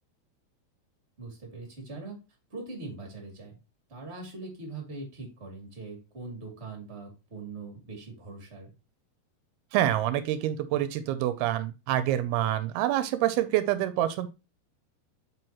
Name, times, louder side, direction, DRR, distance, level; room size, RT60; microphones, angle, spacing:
voice 1, 1.2-2.2 2.5-3.6 3.9-8.7, right 3 dB, 20° right, 1 dB, 2.4 m, -41 dB
voice 2, 9.7-14.3, right 12 dB, 85° right, 12 dB, 2.5 m, -27 dB
7.8 x 5.7 x 3.0 m, 0.29 s
omnidirectional pair, 4.6 m